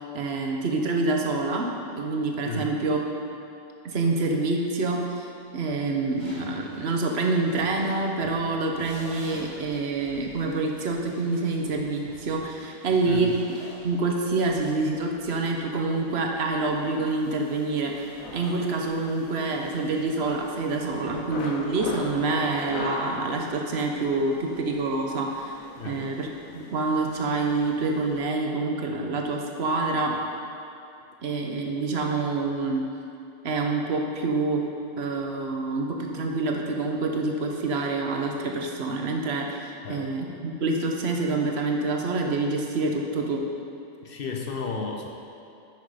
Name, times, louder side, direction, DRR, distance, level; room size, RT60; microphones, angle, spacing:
voice 1, 0.0-3.0 3.8-13.4 13.8-18.1 18.3-25.6 25.8-26.3 26.5-30.2 31.2-32.8 33.4-34.6 35.0-43.4, right 3 dB, 50° right, 1 dB, 1.1 m, -27 dB
voice 2, 2.4-2.8 13.0-13.3 25.8-26.1 39.8-40.1 44.0-45.1, left 4 dB, 50° left, 2 dB, 0.8 m, -33 dB
sound 1, 5.8-16.9 17.5-18.8 19.3-22.1, equal, 20° right, 1.8 m, -48 dB
sound 2, 15.8-28.2, left 2 dB, 70° left, 1.3 m, -42 dB
10.0 x 6.3 x 5.0 m, 2.7 s
omnidirectional pair, 1.5 m